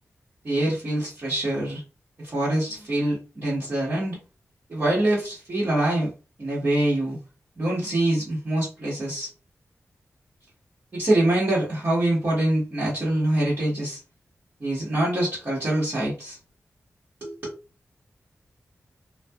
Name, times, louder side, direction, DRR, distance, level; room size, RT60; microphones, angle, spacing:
voice 1, 0.4-1.8 2.2-4.2 4.7-6.1 6.4-7.2 7.6-9.3 10.9-14.0 14.6-16.4 17.2-17.3, right 1 dB, 40° right, -9 dB, 1.2 m, -24 dB
2.7 x 2.4 x 2.3 m, 0.31 s
wide cardioid pair, 155°, 5 cm